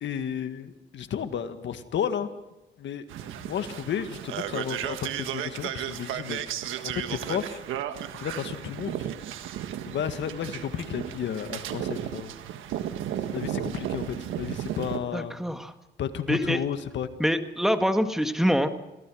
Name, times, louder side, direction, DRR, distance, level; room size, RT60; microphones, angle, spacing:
voice 1, 0.0-2.3 2.8-3.0 3.4-6.4 6.8-7.6 8.2-9.1 9.9-12.3 13.3-15.3 16.0-17.1, left 8 dB, 65° left, 9 dB, 1.8 m, -32 dB
sound 1, 3.1-15.0, right 10 dB, 85° right, 1.5 m, -34 dB
voice 2, 15.1-15.7 16.3-16.6 17.2-18.7, equal, ahead, 7 dB, 1.8 m, -25 dB
26.5 x 16.5 x 6.3 m, 1.0 s
cardioid pair, 90°, 20 cm